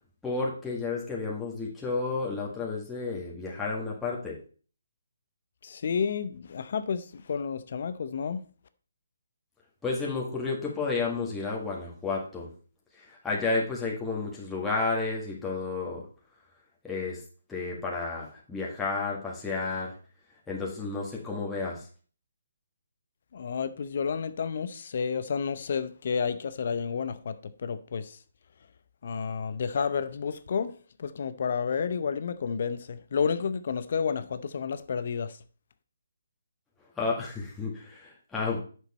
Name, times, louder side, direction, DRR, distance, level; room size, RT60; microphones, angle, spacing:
voice 1, 0.2-4.4 9.8-12.5 13.0-16.0 16.8-17.2 17.5-19.9 20.5-21.8 37.0-38.6, left 3 dB, 5° left, 1.7 m, -31 dB
voice 2, 5.6-8.4 23.3-28.2 29.0-30.7 31.0-35.3, left 6 dB, 55° left, 0.7 m, -31 dB
8.0 x 6.5 x 4.2 m
figure-of-eight pair, 150°, 0 cm